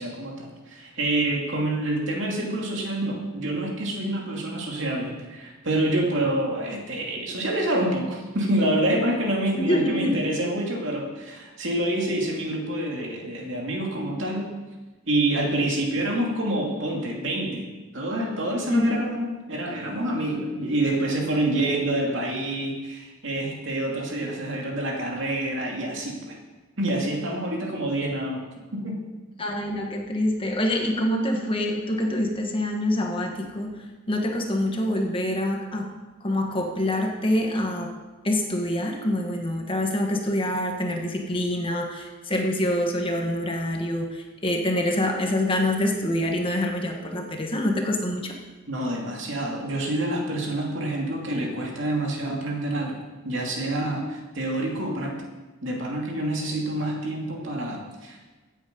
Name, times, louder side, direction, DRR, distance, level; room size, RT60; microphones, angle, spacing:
voice 1, 0.0-14.5 15.1-17.7 17.9-26.4 26.8-29.1 48.7-55.2 55.6-58.3, right 1 dB, 60° right, 0 dB, 2.6 m, -27 dB
voice 2, 9.6-10.1 18.7-19.0 29.4-35.9 36.2-37.9 38.2-48.4, left 1 dB, 25° left, 2 dB, 1.5 m, -26 dB
16.5 x 8.3 x 5.4 m, 1.2 s
head